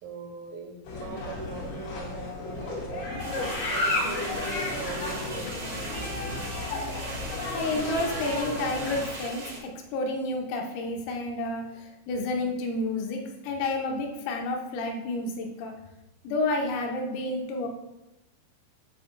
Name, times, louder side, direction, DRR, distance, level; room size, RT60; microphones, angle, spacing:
voice 1, 0.0-3.2 3.7-6.2, right 3 dB, 80° right, 1 dB, 3.8 m, -41 dB
sound 1, 0.8-9.0, left 2 dB, 60° left, 3.5 m, -33 dB
sound 2, 3.2-9.6, right 3 dB, 55° right, 1.7 m, -39 dB
voice 2, 7.5-15.7 16.3-17.7, left 2 dB, 80° left, 1 dB, 3.7 m, -30 dB
8.9 x 7.4 x 2.3 m, 0.99 s
omnidirectional pair, 5.9 m